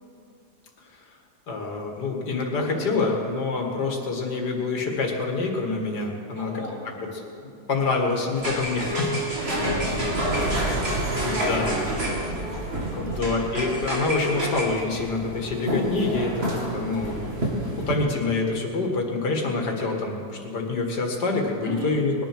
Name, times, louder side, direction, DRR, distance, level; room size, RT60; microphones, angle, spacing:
voice 1, 1.5-6.5 7.2-9.2 9.6-9.8 11.2-11.8 12.9-22.2, left 3 dB, 75° left, 1 dB, 2.5 m, -27 dB
voice 2, 6.4-6.8 9.4-13.3 21.6-22.0, right 1 dB, 80° right, -6 dB, 5.2 m, -37 dB
sound 1, 8.4-18.0, right 1 dB, 35° right, 2.7 m, -28 dB
20.0 x 10.5 x 6.2 m, 2.6 s
omnidirectional pair, 1.8 m